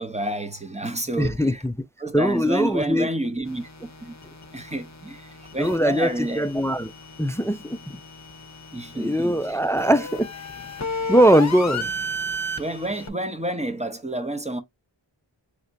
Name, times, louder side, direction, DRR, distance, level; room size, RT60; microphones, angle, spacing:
voice 1, 0.0-1.6 2.0-3.7 4.0-4.1 4.5-6.5 8.7-9.6 12.6-14.6, right 1 dB, 15° right, 0.8 m, -29 dB
voice 2, 1.2-1.7 2.1-3.1 5.6-6.9 7.2-8.0 8.9-10.3 11.1-11.9, equal, 5° left, 0.3 m, -21 dB
sound 1, 3.4-13.1, left 1 dB, 35° left, 0.7 m, -34 dB
4.3 x 3.2 x 2.6 m
wide cardioid pair, 60°, 46 cm